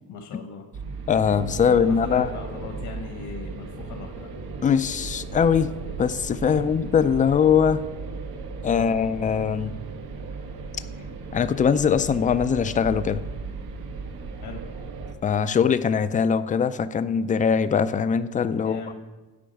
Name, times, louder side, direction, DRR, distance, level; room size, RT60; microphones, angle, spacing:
voice 1, 0.1-0.6 1.5-4.3 6.4-6.9 8.7-9.0 14.4-14.6 18.5-18.9, left 5 dB, 70° left, 4 dB, 1.2 m, -38 dB
sound 1, 0.7-15.1, right 4 dB, 80° right, 1.2 m, -36 dB
voice 2, 1.1-2.3 4.6-5.7 6.0-7.8 8.6-9.8 11.3-13.2 15.2-18.9, left 7 dB, 20° left, 13 dB, 0.3 m, -22 dB
8.6 x 5.2 x 7.8 m, 1.2 s
cardioid pair, 130°, 38 cm